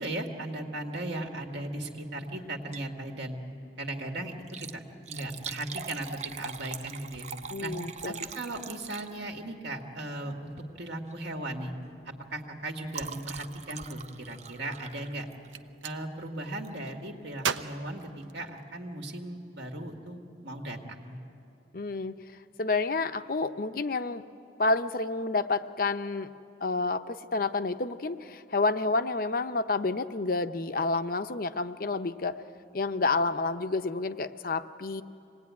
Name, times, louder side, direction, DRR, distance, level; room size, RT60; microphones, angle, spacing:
voice 1, 0.0-3.4 3.8-7.3 7.6-7.7 8.0-11.7 12.1-15.3 15.8-21.2, right 1 dB, 65° right, 2 dB, 2.0 m, -37 dB
Liquid, 2.6-3.0 3.3-3.4 4.3-9.5 10.5-10.7 11.1-11.3 11.6-15.7 16.6-16.9 17.4-17.5 17.7-17.8, right 6 dB, 35° right, 0.6 m, -42 dB
voice 2, 7.5-8.1 21.7-22.1 22.6-24.2 24.6-26.3 26.6-32.4 32.7-35.0, left 3 dB, 50° left, 10 dB, 0.7 m, -29 dB
Gunshot gunfire, 15.4-16.0 17.4-18.9, right 7 dB, 85° right, 0.7 m, -35 dB
25.5 x 19.0 x 9.5 m, 2.6 s
head